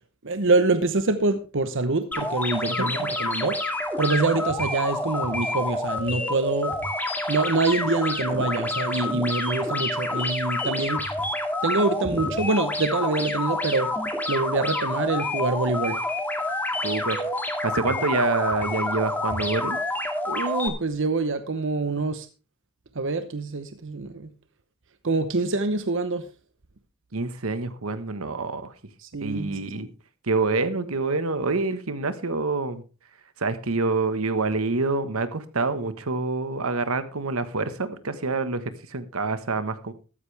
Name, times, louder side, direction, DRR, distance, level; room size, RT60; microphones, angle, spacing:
voice 1, 0.2-3.6 4.0-6.7 7.3-11.1 11.6-13.9 14.3-16.0 20.3-22.3 22.9-24.3 25.0-26.2 29.0-29.6, right 3 dB, 65° right, 10 dB, 0.9 m, -25 dB
sound 1, 2.1-20.7, left 1 dB, 10° left, 2.2 m, -28 dB
voice 2, 16.8-17.2 17.6-19.8 27.1-28.7 29.2-29.9 30.2-32.8 33.4-39.9, right 3 dB, 85° right, 11 dB, 1.3 m, -27 dB
14.0 x 13.0 x 3.4 m, 0.34 s
head